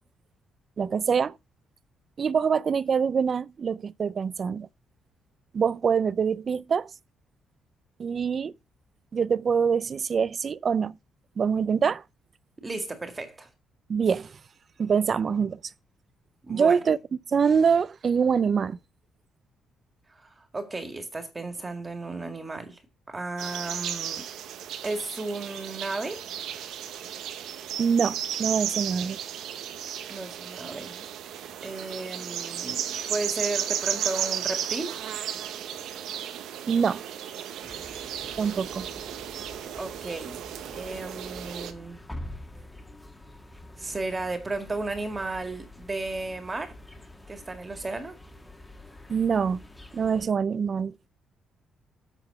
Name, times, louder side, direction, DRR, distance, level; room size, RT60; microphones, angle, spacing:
voice 1, 0.8-1.4 2.2-4.7 5.5-6.9 8.0-8.5 9.1-11.0 11.4-12.0 13.9-14.4 14.8-15.6 16.5-17.0 17.3-18.8 27.8-29.2 36.7-37.0 38.4-38.9 49.1-49.6 49.9-50.9, right 6 dB, 45° right, 0.4 m, -24 dB
voice 2, 12.6-13.5 16.4-16.8 20.1-22.8 23.1-24.3 24.8-26.2 30.1-31.1 31.6-35.0 39.8-42.0 43.8-46.8 47.3-48.2, right 2 dB, 25° right, 1.9 m, -34 dB
sound 1, 23.4-41.7, right 9 dB, 80° right, 0.9 m, -34 dB
sound 2, 37.6-50.3, left 1 dB, 15° left, 1.3 m, -46 dB
8.1 x 4.1 x 6.6 m
cardioid pair, 90°, 0 cm